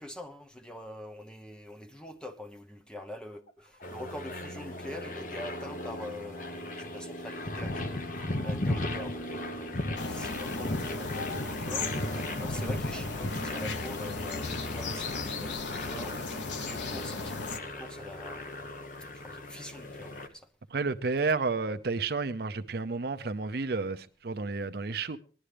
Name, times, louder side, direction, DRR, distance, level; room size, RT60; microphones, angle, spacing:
voice 1, 0.0-20.5, left 1 dB, 5° left, 0.8 m, -45 dB
sound 1, 3.3-6.5 6.9-7.8 8.2-8.8 9.8-10.3 11.1-11.7 12.4-13.5 13.9-14.9 15.4-16.1, left 3 dB, 65° left, 2.3 m, -49 dB
sound 2, 3.8-20.3, left 1 dB, 45° left, 1.1 m, -36 dB
sound 3, 10.0-17.6, left 4 dB, 85° left, 1.0 m, -36 dB
voice 2, 20.7-25.2, right 4 dB, 55° right, 0.6 m, -31 dB
19.0 x 11.5 x 3.3 m
head